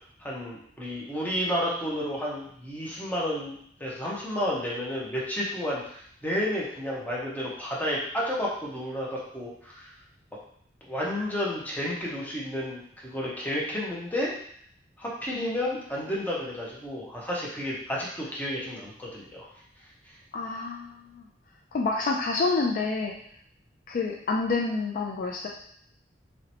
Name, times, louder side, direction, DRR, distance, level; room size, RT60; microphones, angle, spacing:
voice 1, 0.2-3.5 3.8-9.9 10.8-14.3 15.0-19.5, equal, 10° left, -5 dB, 0.8 m, -31 dB
voice 2, 20.3-21.2 21.7-23.1 23.9-25.5, left 3 dB, 50° left, 0 dB, 0.3 m, -28 dB
3.0 x 2.9 x 2.8 m, 0.65 s
head